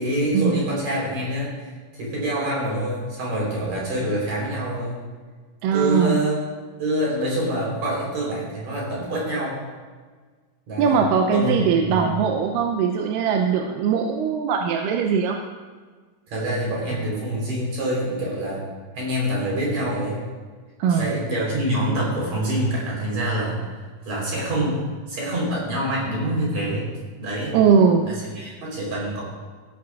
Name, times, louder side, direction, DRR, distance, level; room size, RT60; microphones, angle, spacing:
voice 1, 0.0-5.0 5.7-6.4 6.8-9.6 10.7-11.0 11.3-11.6 11.9-12.0 16.3-18.6 18.9-20.2 20.9-23.6 24.0-26.9 27.2-27.6 28.1-29.2, right 1 dB, 60° right, -5 dB, 5.0 m, -26 dB
voice 2, 5.6-6.2 10.8-15.4 20.8-21.1 27.5-28.1, right 6 dB, 90° right, 3 dB, 2.3 m, -20 dB
15.0 x 11.0 x 2.4 m, 1.5 s
omnidirectional pair, 3.8 m